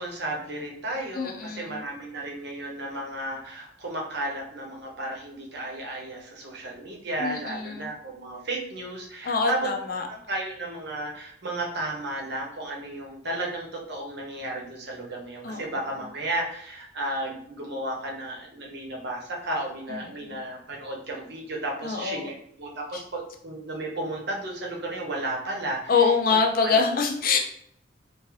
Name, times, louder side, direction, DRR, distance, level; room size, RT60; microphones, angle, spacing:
voice 1, 0.0-9.7 10.1-26.0 26.6-26.8 27.3-27.4, right 1 dB, 60° right, -1 dB, 0.9 m, -33 dB
voice 2, 1.1-1.8 7.2-7.9 9.2-10.1 15.4-15.6 19.9-20.4 21.8-22.2 22.9-23.0 25.9-27.4, left 5 dB, 50° left, 3 dB, 0.5 m, -25 dB
3.7 x 2.6 x 3.1 m, 0.68 s
head